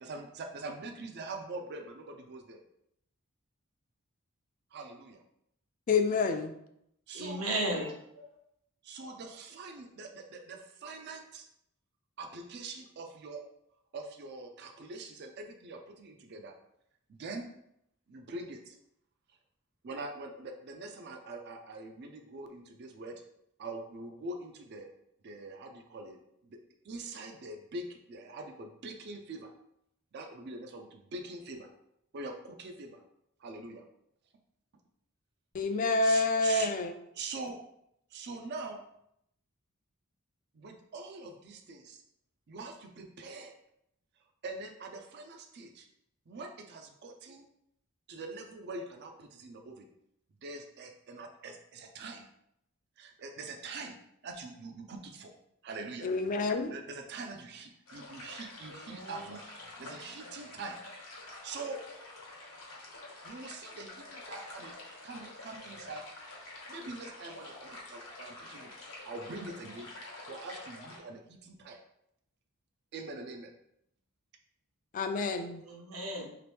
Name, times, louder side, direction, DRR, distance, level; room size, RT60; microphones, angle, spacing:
voice 1, 0.0-2.6 4.7-5.2 7.1-7.4 8.8-11.5 12.2-13.4 13.9-16.5 17.1-17.5 18.1-18.8 19.8-23.2 23.6-24.9 25.2-26.6 26.8-29.5 30.1-31.7 32.1-33.0 33.4-33.9 36.0-36.7 37.1-37.6 38.1-38.8 40.5-42.0 42.5-43.5 44.4-45.9 46.3-47.5 48.1-49.9 50.4-52.3 53.0-54.0 54.2-55.3 55.6-56.1 56.4-60.8 61.2-61.8 63.2-64.7 65.0-66.0 66.7-68.7 69.0-69.9 70.2-71.8 72.9-73.5, right 3 dB, 50° right, 4 dB, 0.4 m, -43 dB
voice 2, 5.9-6.5 35.5-36.9 56.0-56.7 74.9-75.6, left 3 dB, 40° left, 7 dB, 0.3 m, -28 dB
voice 3, 7.1-8.3 58.9-59.4 75.6-76.3, right 1 dB, 75° right, 0 dB, 0.8 m, -35 dB
sound 1, 57.9-71.0, left 2 dB, 80° left, 1.0 m, -48 dB
2.9 x 2.9 x 3.3 m, 0.76 s
head